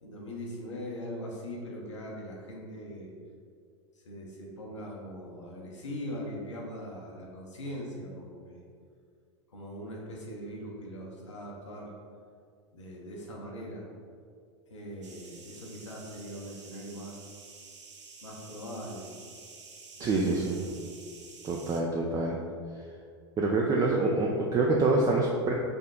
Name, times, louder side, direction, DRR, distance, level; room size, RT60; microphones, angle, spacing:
voice 1, 0.0-3.1 4.0-8.6 9.5-11.9 12.7-13.9 14.7-17.2 18.2-19.1 20.0-20.3, equal, 85° left, -2 dB, 0.9 m, -41 dB
sound 1, 15.0-21.8, right 4 dB, 80° right, 0.6 m, -50 dB
voice 2, 20.0-20.7 21.4-22.4 23.4-25.5, right 3 dB, 25° right, -1 dB, 0.4 m, -26 dB
5.3 x 2.2 x 3.7 m, 2.2 s
hypercardioid pair, 90°, 15 cm